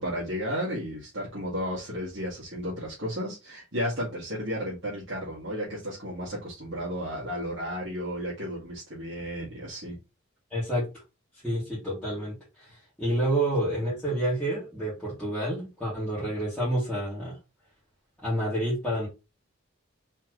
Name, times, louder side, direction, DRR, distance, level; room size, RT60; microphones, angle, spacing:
voice 1, 0.0-10.0, equal, 60° right, -6 dB, 1.8 m, -33 dB
voice 2, 10.5-10.8 11.4-17.3 18.2-19.1, right 1 dB, 5° left, -11 dB, 2.2 m, -29 dB
4.4 x 3.8 x 3.1 m, 0.27 s
head